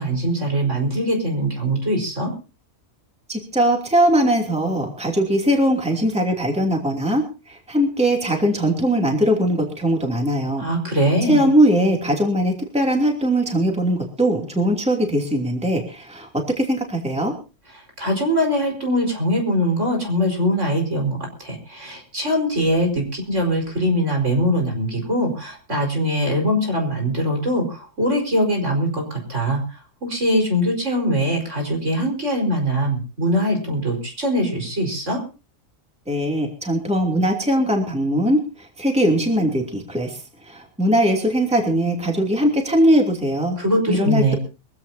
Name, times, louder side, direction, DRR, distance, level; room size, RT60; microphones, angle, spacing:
voice 1, 0.0-2.3 10.6-11.4 18.0-35.2 43.6-44.4, equal, 60° right, 2 dB, 5.1 m, -22 dB
voice 2, 3.3-10.7 11.3-17.3 36.1-43.6 43.9-44.3, equal, 5° right, 1 dB, 2.8 m, -20 dB
23.0 x 16.0 x 2.7 m, 0.32 s
omnidirectional pair, 1.4 m